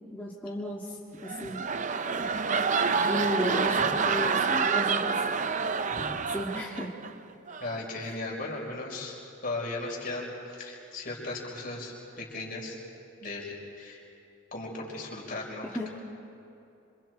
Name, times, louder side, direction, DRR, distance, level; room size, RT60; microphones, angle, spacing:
voice 1, 0.1-1.0 1.2-1.6 1.9-2.3 2.8-5.2 6.3-6.9 15.6-15.9, equal, 10° left, -5 dB, 1.8 m, -34 dB
sound 1, 1.1-7.1 7.5-7.8, right 5 dB, 35° right, 0.6 m, -28 dB
voice 2, 7.6-9.2 9.4-12.8 13.2-14.0 14.5-15.7, left 2 dB, 40° left, -2 dB, 5.1 m, -36 dB
27.0 x 27.0 x 4.6 m, 2.7 s
head